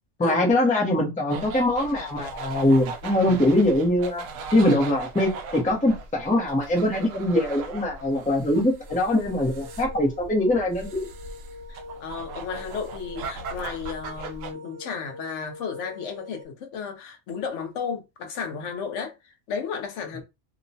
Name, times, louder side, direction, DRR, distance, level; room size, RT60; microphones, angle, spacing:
voice 1, 0.2-4.2 4.5-11.1, left 1 dB, 10° left, 0.5 m, -22 dB
sound 1, 1.3-14.5, right 3 dB, 85° right, 1.0 m, -39 dB
sound 2, 8.9-16.4, left 2 dB, 65° right, 1.3 m, -44 dB
voice 2, 11.7-20.2, left 6 dB, 75° left, 0.9 m, -33 dB
2.9 x 2.1 x 2.6 m
omnidirectional pair, 1.3 m